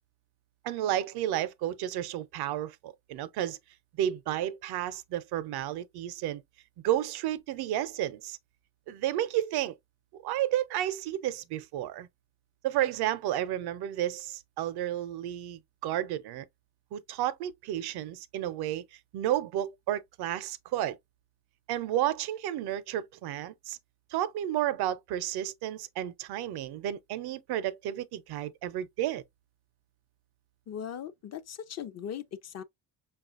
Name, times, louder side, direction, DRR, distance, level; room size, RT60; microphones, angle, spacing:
voice 1, 0.6-3.6 4.0-6.4 6.8-8.4 8.9-9.8 10.2-12.1 12.6-16.5 16.9-18.8 19.1-21.0 21.7-23.8 24.1-29.2, right 12 dB, 80° right, 0.6 m, -32 dB
voice 2, 30.7-32.6, left 9 dB, 45° left, 0.5 m, -39 dB
5.5 x 2.4 x 2.3 m
cardioid pair, 120°, 38 cm